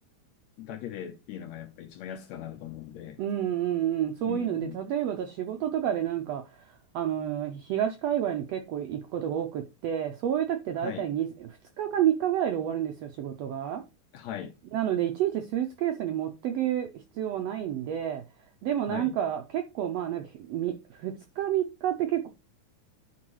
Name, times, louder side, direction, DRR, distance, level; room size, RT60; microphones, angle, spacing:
voice 1, 0.6-3.2 4.2-4.8 10.8-11.1 14.1-14.5 18.9-19.2, left 10 dB, 75° left, 1.7 m, -39 dB
voice 2, 3.2-11.5 11.8-13.8 14.7-16.9 17.1-18.2 18.6-22.3, right 10 dB, 80° right, 1.4 m, -29 dB
11.5 x 4.6 x 3.1 m
omnidirectional pair, 3.7 m